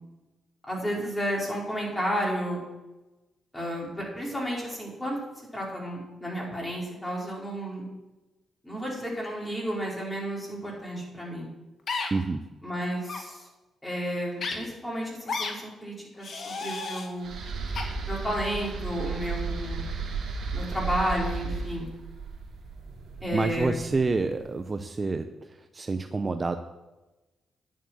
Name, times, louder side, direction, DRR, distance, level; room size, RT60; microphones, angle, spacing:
voice 1, 0.7-2.6 3.5-5.2 5.5-7.8 8.6-11.5 12.6-13.5 13.8-17.3 18.0-19.9 20.5-21.9 23.2-23.8, equal, 15° left, -4 dB, 5.0 m, -32 dB
sound 1, 11.9-12.1 13.0-13.2 14.4-14.5 15.3-15.5 16.2-17.1 17.7-17.8, left 4 dB, 60° left, 1.8 m, -32 dB
voice 2, 12.1-12.5 23.3-26.6, right 3 dB, 35° right, 8 dB, 0.7 m, -28 dB
sound 2, 17.2-24.4, right 4 dB, 65° right, 2.9 m, -34 dB
10.5 x 7.5 x 6.4 m, 1.1 s
cardioid pair, 75°, 0 cm